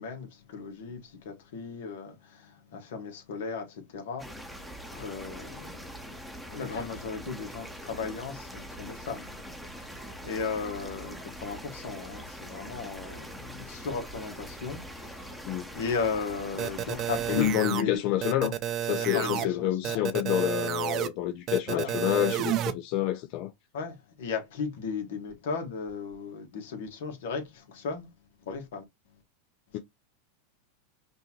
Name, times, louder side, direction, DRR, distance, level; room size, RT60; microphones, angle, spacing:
voice 1, 0.0-5.9 6.4-9.3 9.6-18.1 19.0-20.0 21.7-21.9 23.7-28.1 28.4-28.8 29.7-29.8, left 5 dB, 75° left, 1.5 m, -36 dB
sound 1, 4.2-17.6, equal, ahead, 0.9 m, -43 dB
sound 2, 16.6-17.8 18.2-19.4 19.8-21.1 21.5-22.7, right 11 dB, 40° right, 0.5 m, -30 dB
voice 2, 17.3-18.6 18.8-23.5 29.7-29.8, left 12 dB, 55° left, 0.5 m, -28 dB
5.4 x 2.8 x 2.9 m
hypercardioid pair, 110°, 0 cm